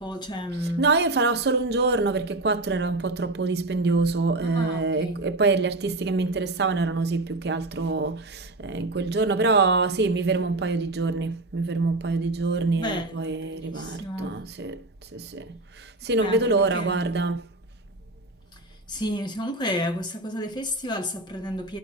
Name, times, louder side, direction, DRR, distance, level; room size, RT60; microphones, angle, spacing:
voice 1, 0.0-0.9 4.4-5.3 12.7-14.4 16.2-17.1 18.5-18.6 18.9-21.8, left 1 dB, 25° left, 1.0 m, -32 dB
voice 2, 0.8-14.8 15.1-17.5, right 3 dB, 60° right, 0.6 m, -25 dB
12.0 x 5.1 x 2.9 m
head